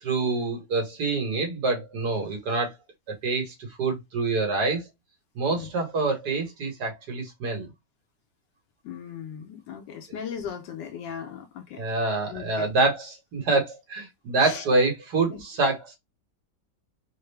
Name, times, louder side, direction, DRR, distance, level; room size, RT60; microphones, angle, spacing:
voice 1, 0.0-2.7 3.1-4.8 5.3-7.7 11.8-16.0, right 3 dB, 65° right, 1.7 m, -26 dB
voice 2, 8.8-11.8 12.3-12.7 14.4-14.6 15.3-15.4, left 8 dB, 80° left, 1.3 m, -38 dB
3.7 x 2.0 x 3.2 m
omnidirectional pair, 1.9 m